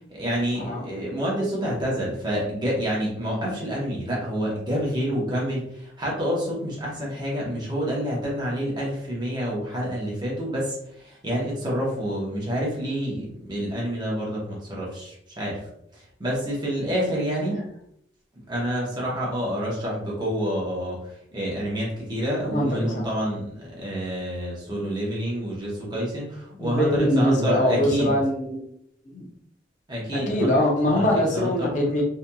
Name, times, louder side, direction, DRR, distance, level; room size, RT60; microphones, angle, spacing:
voice 1, 0.1-15.6 15.9-17.6 18.5-28.1 29.9-30.6 30.9-31.7, equal, 25° right, -5 dB, 0.8 m, -28 dB
voice 2, 22.4-23.1 26.6-28.6 29.1-29.3 30.1-32.0, equal, 45° left, -2 dB, 0.6 m, -23 dB
2.8 x 2.5 x 2.2 m, 0.72 s
head